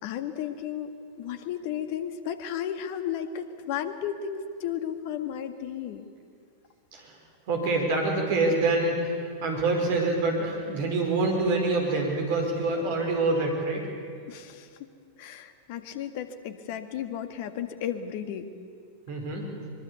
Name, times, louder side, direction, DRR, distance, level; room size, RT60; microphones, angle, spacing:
voice 1, 0.0-6.1 14.3-14.9 15.2-18.5, left 9 dB, 50° left, 9 dB, 1.8 m, -34 dB
voice 2, 7.5-13.8 19.1-19.5, right 2 dB, 50° right, 2 dB, 5.1 m, -26 dB
24.5 x 22.5 x 8.3 m, 2.2 s
figure-of-eight pair, 90°, 0 cm